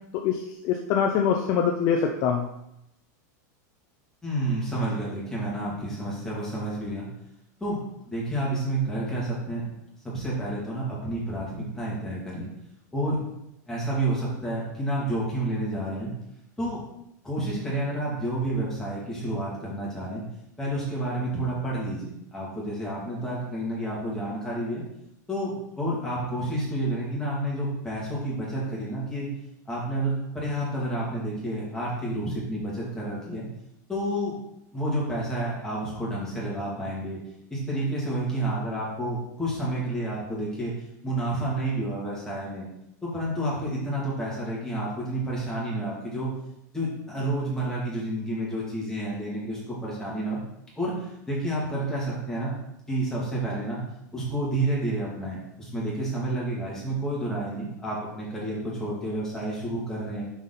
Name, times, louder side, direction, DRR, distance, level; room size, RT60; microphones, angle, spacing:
voice 1, 0.1-2.5, left 7 dB, 40° left, 3 dB, 0.6 m, -24 dB
voice 2, 4.2-7.1 7.6-7.8 8.0-9.6 10.0-12.5 12.9-13.2 13.7-16.1 16.6-16.8 17.2-20.2 20.6-24.8 25.3-29.3 29.7-33.5 33.9-34.3 34.7-37.2 37.5-40.7 41.0-42.7 43.0-46.3 46.7-50.4 50.8-52.5 52.9-53.8 54.1-60.2, right 1 dB, 5° left, -7 dB, 2.6 m, -30 dB
6.3 x 5.3 x 4.1 m, 0.82 s
supercardioid pair, 150°, 10 cm